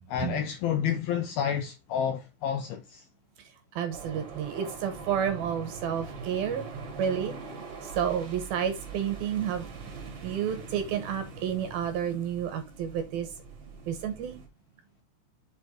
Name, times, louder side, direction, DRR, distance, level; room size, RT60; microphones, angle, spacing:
voice 1, 0.1-3.0, left 8 dB, 80° left, 2.2 m, -30 dB
voice 2, 3.8-6.7 7.0-7.3 7.8-9.6 10.2-13.3 13.9-14.4, right 8 dB, 70° right, 2.6 m, -30 dB
sound 1, 3.9-14.5, right 4 dB, 40° right, 2.5 m, -43 dB
7.6 x 5.9 x 3.7 m
omnidirectional pair, 5.2 m